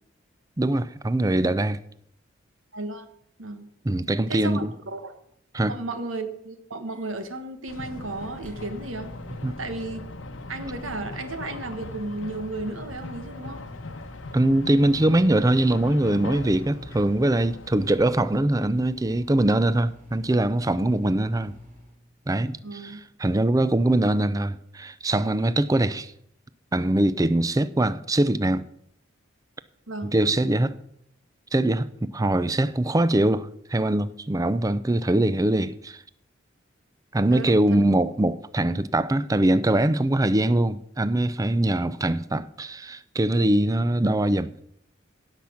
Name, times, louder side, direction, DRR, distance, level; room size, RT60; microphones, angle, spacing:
voice 1, 0.6-1.8 3.8-4.7 5.5-5.7 9.4-9.6 14.3-21.5 22.3-26.1 26.7-28.6 30.1-30.7 31.5-36.0 37.1-44.5, right 1 dB, 15° right, 0.5 m, -22 dB
voice 2, 2.7-3.1 3.4-3.7 4.3-5.1 5.7-9.1 9.6-10.0 10.5-13.6 22.6-23.0 29.9-30.1 37.3-37.9, right 2 dB, 85° right, 1.3 m, -34 dB
Microwave oven, 6.9-22.0, equal, 40° right, 3.4 m, -47 dB
sound 1, 7.7-18.1, left 2 dB, 85° left, 1.1 m, -40 dB
16.5 x 5.9 x 7.1 m
head